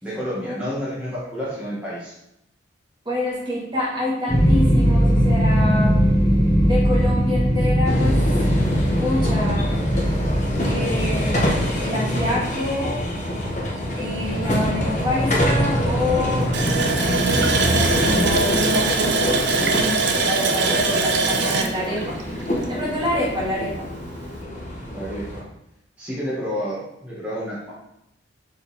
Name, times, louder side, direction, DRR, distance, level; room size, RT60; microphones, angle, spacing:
voice 1, 0.0-2.2 24.8-25.4 26.0-27.7, equal, 10° right, -10 dB, 1.7 m, -30 dB
voice 2, 3.1-5.9 6.6-8.2 9.0-9.7 10.6-13.0 13.9-22.2 22.7-23.9, left 1 dB, 25° right, -5 dB, 2.1 m, -27 dB
sound 1, 4.3-12.2, equal, 20° left, 1.4 m, -20 dB
sound 2, 7.8-25.4, equal, 40° left, 1.5 m, -25 dB
Water tap faucet, 16.5-23.0 23.4-23.5 23.9-24.1, right 4 dB, 60° right, 0.7 m, -22 dB
6.9 x 3.9 x 4.3 m, 0.80 s
head